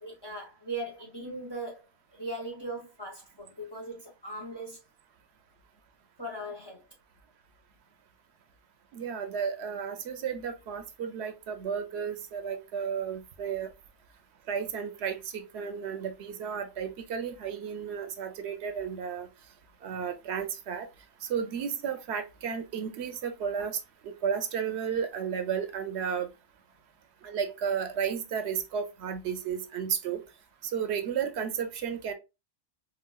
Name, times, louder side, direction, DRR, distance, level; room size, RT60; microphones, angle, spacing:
voice 1, 0.0-1.9 2.1-4.8 6.2-6.8, right 1 dB, 30° left, 0.5 m, -39 dB
voice 2, 8.9-13.7 14.5-19.3 19.8-20.9 21.2-26.3 27.2-30.2 30.6-32.1, right 7 dB, 70° right, 0.8 m, -33 dB
4.0 x 2.3 x 2.2 m
omnidirectional pair, 1.2 m